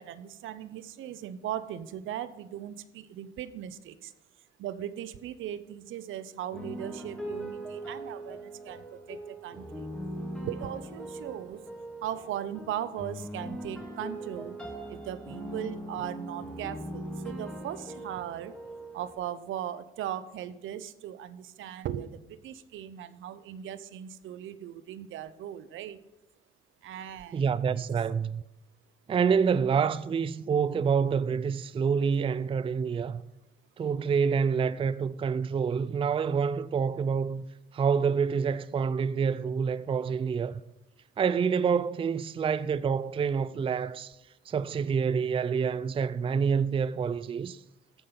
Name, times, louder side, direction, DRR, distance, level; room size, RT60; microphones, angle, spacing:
voice 1, 0.0-4.1 4.6-9.9 10.4-11.6 12.0-14.6 14.9-18.6 18.9-26.0 26.8-27.4 27.7-27.8, right 11 dB, 80° right, 0.7 m, -38 dB
sound 1, 6.5-19.1, right 1 dB, 5° left, 3.1 m, -40 dB
voice 2, 27.3-28.4 29.1-33.2 33.8-37.4 37.7-40.6 41.2-44.2 44.5-47.6, right 6 dB, 25° right, 0.4 m, -27 dB
14.5 x 5.3 x 5.8 m
cardioid pair, 90°, 20 cm